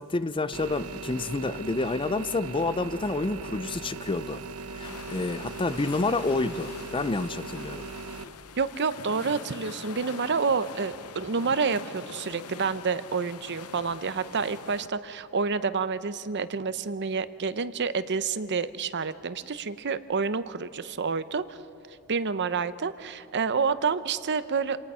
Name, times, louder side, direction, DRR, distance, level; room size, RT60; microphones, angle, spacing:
voice 1, 0.0-4.4 4.7-7.8, left 3 dB, 25° left, 14 dB, 0.5 m, -29 dB
sound 1, 0.5-8.2, right 4 dB, 90° right, 1.1 m, -39 dB
sound 2, 4.8-14.9, left 5 dB, 85° left, 0.9 m, -44 dB
voice 2, 8.6-21.6 21.9-24.8, right 5 dB, 55° right, 14 dB, 0.7 m, -29 dB
27.5 x 19.0 x 5.6 m, 2.9 s
head